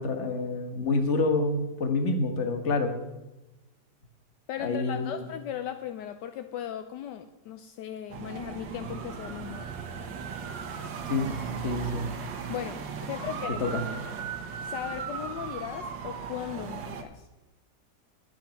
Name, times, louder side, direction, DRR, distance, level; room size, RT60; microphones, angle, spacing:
voice 1, 0.0-2.9 4.6-5.2 11.1-12.1 13.6-13.8, left 3 dB, 40° left, 6 dB, 1.5 m, -28 dB
voice 2, 4.5-9.7 12.5-13.6 14.6-17.3, left 10 dB, 75° left, 9 dB, 1.2 m, -37 dB
sound 1, 8.1-17.0, right 6 dB, 80° right, 1.7 m, -37 dB
10.5 x 9.2 x 5.8 m, 1.0 s
omnidirectional pair, 2.0 m